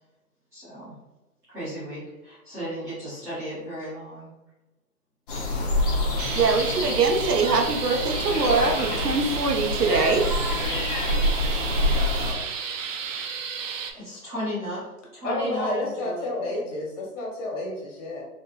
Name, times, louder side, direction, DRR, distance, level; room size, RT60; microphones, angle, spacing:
voice 1, 0.5-0.9 1.5-4.3 13.9-14.8 15.1-16.7, equal, 5° right, -13 dB, 0.5 m, -35 dB
sound 1, 5.3-12.3, left 1 dB, 35° left, 0.7 m, -27 dB
sound 2, 6.2-13.9, right 6 dB, 55° right, 0.6 m, -33 dB
voice 2, 6.3-10.3, right 4 dB, 90° right, 3 dB, 0.9 m, -23 dB
voice 3, 15.2-18.2, left 2 dB, 55° left, -2 dB, 1.4 m, -30 dB
4.0 x 2.2 x 2.8 m, 1.0 s
hypercardioid pair, 145°, 46 cm